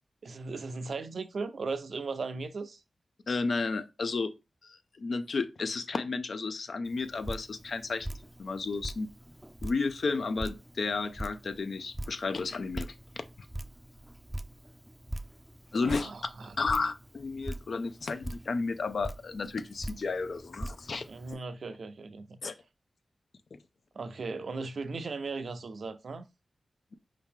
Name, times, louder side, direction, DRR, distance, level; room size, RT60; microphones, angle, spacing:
voice 1, 0.2-2.8 15.8-16.6 21.1-22.4 24.0-26.2, right 4 dB, 70° right, 0.5 m, -37 dB
voice 2, 3.3-4.3 5.0-8.1 8.4-9.1 9.6-12.9 15.7-16.1 16.6-21.0 22.4-22.5, left 4 dB, 70° left, 0.5 m, -32 dB
Drip, 6.8-21.3, right 1 dB, 10° right, 0.4 m, -43 dB
4.7 x 2.9 x 3.6 m
wide cardioid pair, 70°, 0 cm